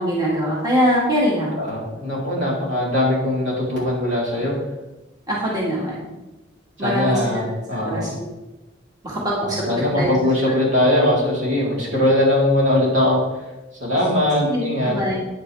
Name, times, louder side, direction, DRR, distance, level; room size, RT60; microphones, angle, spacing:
voice 1, 0.0-1.6 5.3-6.1 6.8-7.5 7.8-8.1 9.0-10.1 14.4-15.3, equal, 20° right, -5 dB, 2.1 m, -23 dB
voice 2, 1.6-4.5 6.8-8.1 9.4-13.2 13.8-14.9, left 1 dB, 75° right, -5 dB, 3.9 m, -20 dB
9.6 x 9.5 x 3.5 m, 1.0 s
head